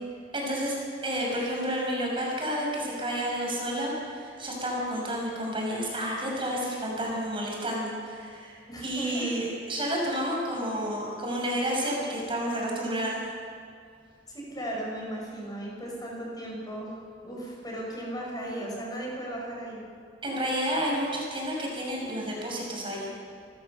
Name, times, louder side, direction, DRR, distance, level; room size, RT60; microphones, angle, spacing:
voice 1, 0.3-0.8 1.0-13.2 20.2-23.1, equal, 30° right, -2 dB, 6.0 m, -30 dB
voice 2, 8.7-9.3 14.3-16.9 17.2-19.8, right 1 dB, 20° left, -2 dB, 5.9 m, -36 dB
29.0 x 14.5 x 6.7 m, 2.4 s
head